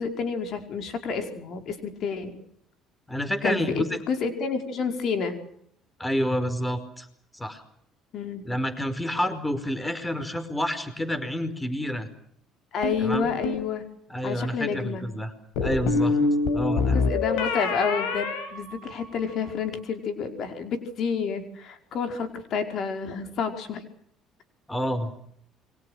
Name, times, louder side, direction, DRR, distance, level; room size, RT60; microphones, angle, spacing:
voice 1, 0.0-2.4 3.4-5.4 8.1-8.4 12.7-13.8 14.2-15.0 16.9-23.8, left 5 dB, 60° left, 6 dB, 5.0 m, -29 dB
voice 2, 3.1-4.0 6.0-7.1 7.3-7.6 8.4-12.1 13.0-13.3 14.1-15.3 15.6-16.2 16.5-17.0 24.7-25.1, equal, 10° left, 12 dB, 4.9 m, -28 dB
sound 1, 12.8-13.7 15.6-19.3, left 3 dB, 75° left, 6.4 m, -26 dB
28.5 x 24.0 x 6.5 m, 0.70 s
hypercardioid pair, 65°, 0 cm